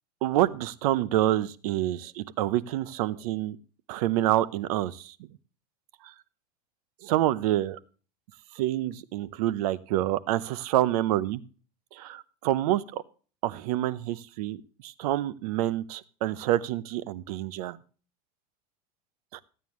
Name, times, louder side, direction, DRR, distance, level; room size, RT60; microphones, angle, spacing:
voice 1, 0.2-3.6 3.9-5.1 6.0-6.1 7.0-7.8 8.6-11.4 11.9-13.0 13.4-17.8 19.3-19.4, right 14 dB, 70° right, 17 dB, 0.8 m, -27 dB
15.0 x 9.1 x 3.1 m, 0.38 s
supercardioid pair, 140°, 20 cm